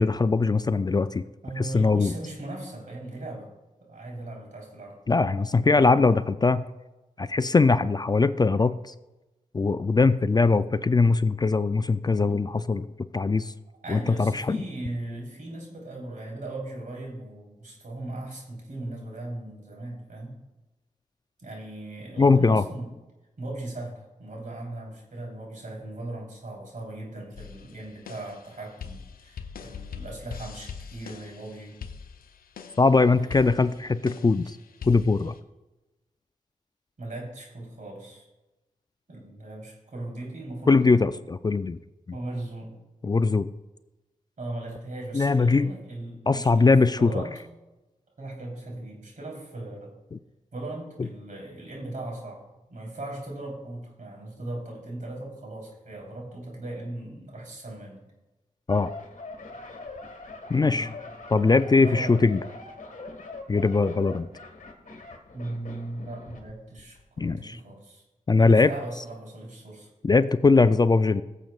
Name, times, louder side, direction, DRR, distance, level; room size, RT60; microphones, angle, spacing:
voice 1, 0.0-1.2 1.6-2.1 5.1-6.6 7.2-8.9 9.5-12.9 13.1-13.5 13.9-14.6 22.2-22.6 32.8-34.6 34.9-35.3 40.7-41.8 43.0-43.5 45.1-45.7 46.3-47.2 50.1-50.2 58.7-58.9 60.5-60.9 61.3-62.4 63.5-64.3 67.2-67.6 68.3-68.7 70.0-71.2, left 4 dB, 30° left, 13 dB, 0.3 m, -21 dB
voice 2, 1.4-3.5 3.8-5.0 13.8-20.4 21.4-22.9 23.4-31.8 33.1-33.5 37.0-38.3 39.1-40.8 42.1-42.8 44.4-47.3 48.2-49.9 50.5-52.4 52.7-58.0 60.6-60.8 61.8-62.2 65.3-68.0 68.4-69.9, right 2 dB, 65° right, -1 dB, 3.6 m, -38 dB
sound 1, 27.4-35.4, left 6 dB, 90° left, 0.6 m, -43 dB
sound 2, 58.7-66.5 66.8-67.0, left 3 dB, 60° left, 1.5 m, -42 dB
15.5 x 7.4 x 2.4 m, 1.0 s
cardioid pair, 50°, 15 cm